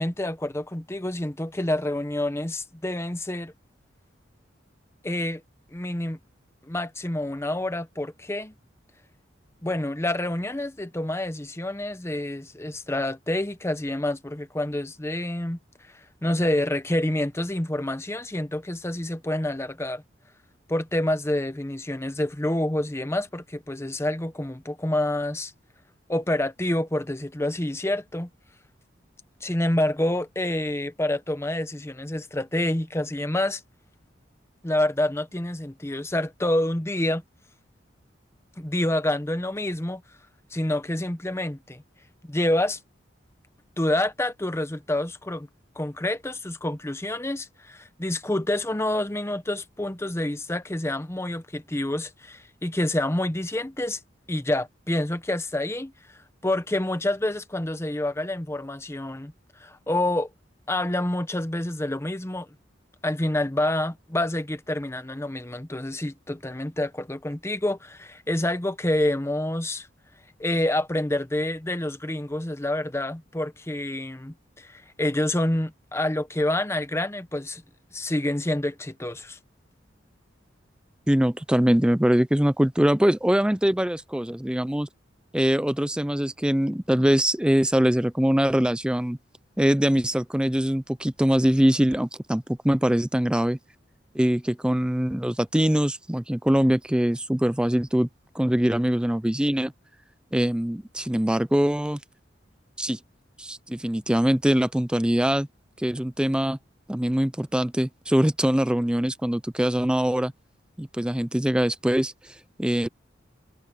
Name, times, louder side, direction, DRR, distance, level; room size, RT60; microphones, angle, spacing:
voice 1, 0.0-3.5 5.0-5.4 5.7-6.2 6.6-8.5 9.6-15.6 15.9-20.0 20.7-25.5 26.1-28.3 29.4-33.6 34.6-37.2 38.6-40.0 40.5-41.8 42.2-42.8 43.8-45.5 45.8-54.0 54.3-55.9 56.4-59.3 59.6-60.3 60.7-62.5 63.0-69.9 70.4-77.6 77.9-79.4, left 1 dB, 15° left, 0.9 m, -27 dB
voice 2, 81.1-84.9 85.3-89.2 89.6-93.6 94.1-98.1 98.3-99.7 100.3-102.0 102.8-103.0 103.4-105.5 105.8-106.6 106.9-110.3 110.8-112.9, equal, 5° right, 0.4 m, -23 dB
head